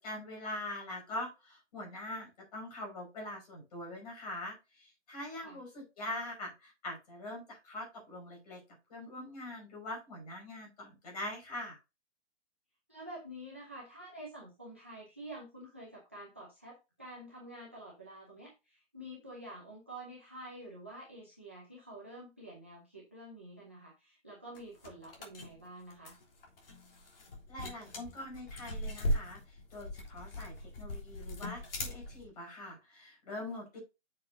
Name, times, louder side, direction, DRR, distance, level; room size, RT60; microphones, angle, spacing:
voice 1, 0.0-8.6 8.9-11.8 27.5-33.8, left 1 dB, 30° left, 1 dB, 5.3 m, -43 dB
voice 2, 12.9-26.2, right 1 dB, 10° right, -3 dB, 0.6 m, -48 dB
sound 1, 24.5-32.3, equal, 50° left, 3.5 m, -39 dB
9.5 x 6.7 x 2.7 m, 0.26 s
hypercardioid pair, 180°, 36 cm